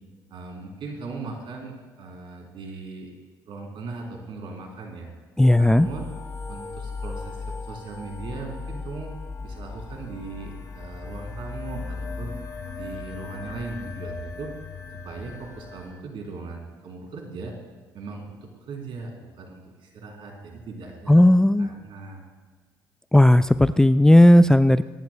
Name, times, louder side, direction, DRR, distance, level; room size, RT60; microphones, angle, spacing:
voice 1, 0.3-3.1 3.5-5.1 5.6-6.1 6.5-9.1 9.4-12.3 12.8-14.5 15.0-17.5 17.9-18.4 18.7-21.2 21.6-22.2, right 3 dB, 60° right, 1 dB, 3.3 m, -38 dB
sound 1, 5.4-15.9, left 4 dB, 35° left, 2.7 m, -37 dB
voice 2, 5.4-5.9 21.1-21.7 23.1-24.8, left 1 dB, 5° left, 13 dB, 0.3 m, -15 dB
23.0 x 10.5 x 2.2 m, 1.5 s
hypercardioid pair, 60°, 10 cm